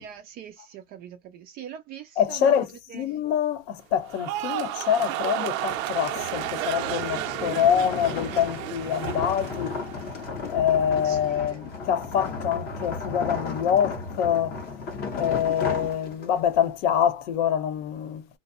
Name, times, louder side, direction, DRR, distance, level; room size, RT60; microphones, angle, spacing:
voice 1, 0.0-2.5 2.9-3.2 11.0-11.6, right 9 dB, 25° right, 0.3 m, -42 dB
voice 2, 2.2-2.7 2.9-9.8 10.5-14.6 15.1-18.3, left 9 dB, 65° left, 0.8 m, -25 dB
sound 1, 4.1-10.4 10.7-11.2, right 14 dB, 85° right, 0.6 m, -32 dB
sound 2, 5.6-16.6, left 4 dB, 25° left, 0.6 m, -34 dB
2.6 x 2.0 x 2.4 m
supercardioid pair, 140°, 40 cm